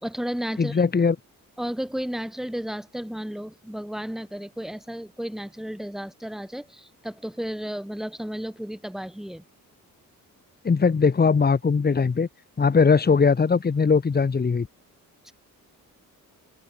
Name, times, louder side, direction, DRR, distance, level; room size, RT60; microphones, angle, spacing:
voice 1, 0.0-0.8 1.6-9.4 15.2-15.3, equal, ahead, 3.7 m, -33 dB
voice 2, 0.6-1.1 10.6-12.3 12.6-14.7, left 5 dB, 25° left, 3.3 m, -20 dB
open air
wide cardioid pair, 170°, 35 cm